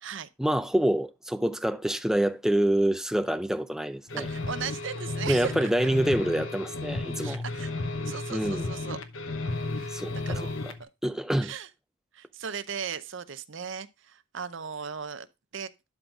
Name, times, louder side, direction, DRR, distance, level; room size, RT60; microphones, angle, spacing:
voice 1, 0.4-4.2 5.3-7.4 8.3-8.7 9.9-10.4 11.0-11.5, right 1 dB, ahead, 0.4 m, -26 dB
sound 1, 4.1-10.8, left 2 dB, 65° left, 1.0 m, -33 dB
voice 2, 4.2-5.7 7.2-7.7 8.0-9.0 9.8-10.5 10.8-10.9 11.4-11.7 12.1-15.3 15.5-15.7, right 7 dB, 60° right, 0.6 m, -37 dB
11.5 x 4.0 x 4.6 m
head